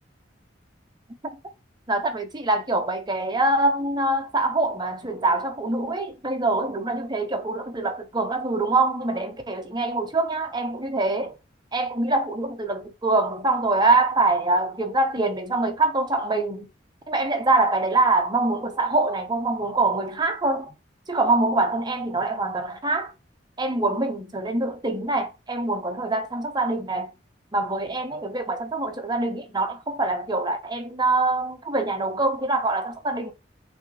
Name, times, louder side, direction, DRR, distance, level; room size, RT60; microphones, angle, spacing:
voice 1, 1.9-11.4 11.7-16.7 17.1-20.7 21.1-23.1 23.6-27.1 27.5-33.3, right 2 dB, 25° right, 0.8 m, -24 dB
6.3 x 2.8 x 3.0 m
head